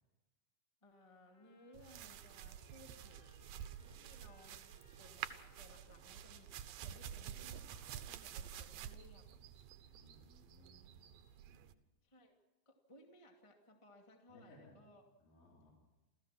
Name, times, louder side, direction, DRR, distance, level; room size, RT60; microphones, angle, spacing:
voice 1, 0.8-3.6 4.0-9.4 12.0-12.3 12.6-15.0, left 1 dB, 10° left, 2 dB, 1.7 m, -62 dB
Trumpet, 1.3-9.0, left 2 dB, 40° left, 2.7 m, -72 dB
sound 1, 1.7-11.7, right 10 dB, 75° right, 2.7 m, -50 dB
voice 2, 3.3-4.2 5.8-5.9 9.8-11.1 11.5-11.7 14.3-14.8 15.2-15.7, left 1 dB, 65° left, -3 dB, 5.4 m, -65 dB
29.0 x 15.0 x 6.0 m, 1.1 s
omnidirectional pair, 4.2 m